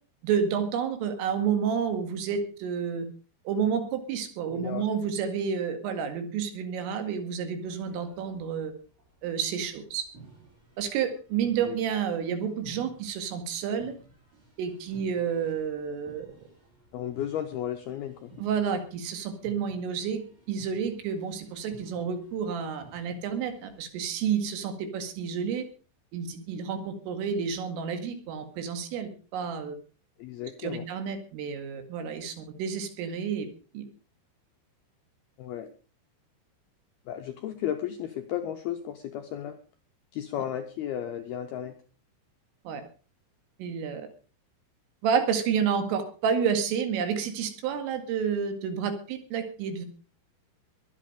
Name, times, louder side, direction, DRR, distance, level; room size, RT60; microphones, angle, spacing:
voice 1, 0.2-3.1 3.5-8.7 9.2-10.0 10.8-13.9 14.6-16.3 18.4-20.2 20.5-25.6 26.1-29.8 30.6-33.5 33.7-33.8 42.7-42.8 43.6-44.1 45.0-49.9, right 7 dB, 80° right, 7 dB, 4.6 m, -30 dB
voice 2, 4.5-4.9 11.6-11.8 16.9-18.3 30.2-30.8 35.4-35.7 37.1-39.6 40.1-41.7, left 10 dB, 80° left, 5 dB, 2.2 m, -34 dB
sound 1, 7.6-23.9, right 3 dB, 45° right, 9.3 m, -55 dB
22.0 x 8.6 x 5.0 m, 0.38 s
omnidirectional pair, 5.8 m